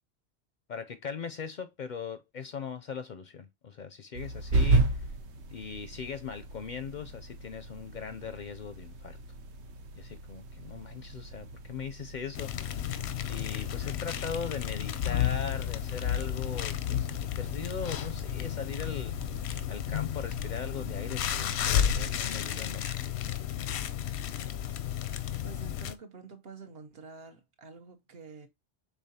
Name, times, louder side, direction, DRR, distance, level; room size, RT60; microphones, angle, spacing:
voice 1, 0.7-5.1 5.5-9.2 10.0-13.0 13.3-17.1 17.4-23.1, left 6 dB, 55° left, 0.5 m, -40 dB
sound 1, 4.1-22.0, right 2 dB, 90° right, 1.0 m, -36 dB
sound 2, 12.3-25.9, left 10 dB, 85° left, 0.9 m, -32 dB
voice 2, 25.4-28.5, right 4 dB, 65° right, 1.1 m, -48 dB
5.5 x 3.6 x 2.7 m
omnidirectional pair, 1.1 m